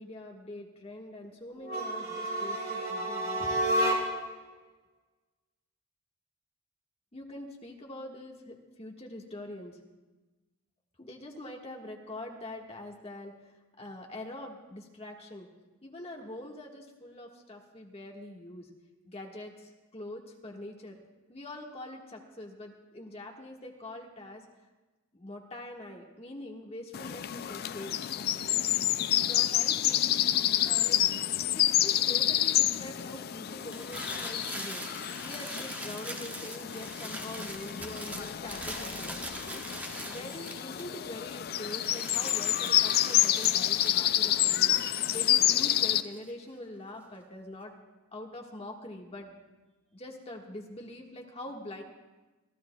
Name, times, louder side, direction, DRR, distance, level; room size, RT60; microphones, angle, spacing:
voice 1, 0.0-3.5 7.1-9.8 11.0-13.3 13.8-15.5 15.8-18.7 19.0-21.0 21.3-24.4 25.1-28.0 29.2-30.4 30.6-31.0 31.5-34.9 35.2-39.2 39.5-39.6 40.0-44.8 45.1-47.7 48.1-49.3 49.9-51.8, left 1 dB, 30° left, 1 dB, 1.6 m, -44 dB
sound 1, 1.6-4.4, right 1 dB, 75° right, 2.5 m, -30 dB
sound 2, 26.9-46.0, left 12 dB, 50° left, 0.3 m, -28 dB
sound 3, 33.6-41.2 41.5-46.3, right 1 dB, 10° right, 1.1 m, -42 dB
25.0 x 15.5 x 2.3 m, 1.2 s
head